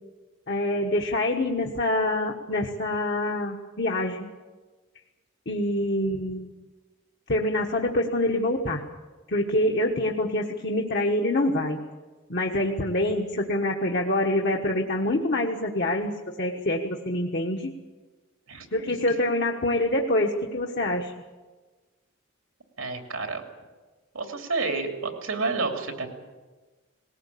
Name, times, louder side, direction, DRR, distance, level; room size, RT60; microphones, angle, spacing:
voice 1, 0.5-4.3 5.5-6.5 7.3-8.8 9.3-11.8 12.3-16.1 16.4-17.7 18.7-21.1, left 1 dB, 50° left, 0 dB, 1.4 m, -26 dB
voice 2, 18.5-18.9 22.8-23.4 24.1-26.1, right 3 dB, 90° right, 4 dB, 2.8 m, -30 dB
20.0 x 18.5 x 8.5 m, 1.3 s
head